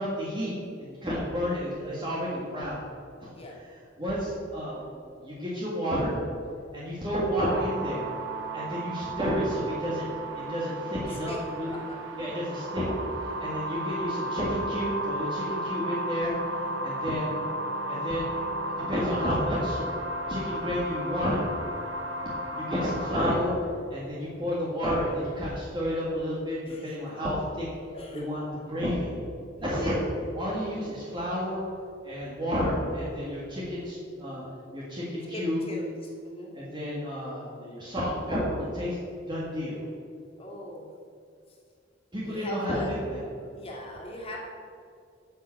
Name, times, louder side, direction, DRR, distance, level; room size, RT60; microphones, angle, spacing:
voice 1, 0.0-2.8 3.2-3.3 3.5-3.7 4.0-6.1 6.7-8.1 8.5-11.8 12.2-12.8 13.2-17.3 17.9-19.8 20.3-21.4 22.5-23.6 23.9-27.7 28.1-28.4 28.7-29.1 29.6-30.0 30.3-31.6 32.0-34.4 34.7-35.7 36.5-39.0 39.3-39.8 42.1-43.2, equal, 25° right, -6 dB, 1.9 m, -31 dB
sound 1, 7.5-23.3, right 1 dB, 75° right, 1.2 m, -34 dB
voice 2, 27.9-28.3 29.6-29.9 35.3-35.8 36.2-36.5 40.4-40.9 42.3-42.9 43.5-44.4, left 1 dB, 30° left, -2 dB, 2.3 m, -40 dB
9.4 x 6.6 x 7.6 m, 2.4 s
head